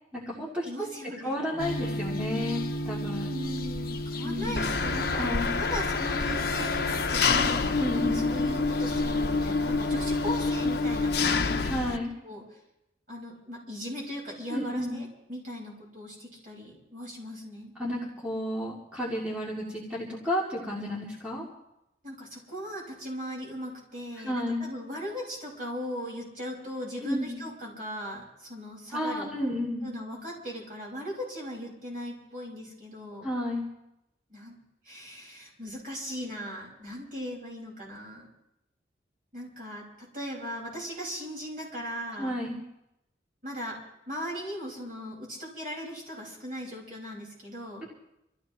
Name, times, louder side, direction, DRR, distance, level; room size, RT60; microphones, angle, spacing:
voice 1, 0.1-0.7 1.2-3.3 4.2-4.7 5.2-5.6 7.8-8.3 11.6-12.1 14.5-15.0 17.8-21.4 24.2-24.7 27.0-27.4 28.9-29.9 33.2-33.6 42.2-42.6, left 1 dB, 5° right, -6 dB, 2.6 m, -32 dB
voice 2, 0.6-1.4 3.3-5.3 5.6-11.8 12.2-12.4 13.1-17.7 22.0-29.4 29.8-33.3 34.3-34.6 34.8-38.3 39.3-42.3 43.4-43.8 44.1-47.8, equal, 50° right, -2 dB, 5.2 m, -38 dB
sound 1, 1.6-11.8, left 1 dB, 50° left, 1.1 m, -35 dB
Engine, 4.6-12.0, left 4 dB, 70° left, 0.8 m, -27 dB
26.5 x 15.0 x 3.1 m, 0.85 s
head